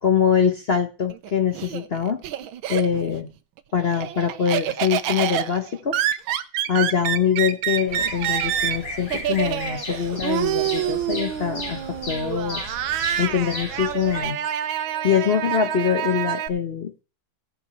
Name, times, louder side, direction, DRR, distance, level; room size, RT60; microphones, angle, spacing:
voice 1, 0.0-2.2 2.7-3.3 3.7-6.0 6.7-11.8 12.1-12.6 13.2-14.4 15.0-16.9, left 7 dB, 55° left, 7 dB, 0.7 m, -23 dB
Laughter, 1.1-3.2 3.6-16.5, right 11 dB, 75° right, 1.6 m, -27 dB
Bird vocalization bird call bird song, 7.9-14.2, left 2 dB, 80° left, 6.2 m, -35 dB
16.5 x 6.6 x 4.2 m, 0.33 s
omnidirectional pair, 2.3 m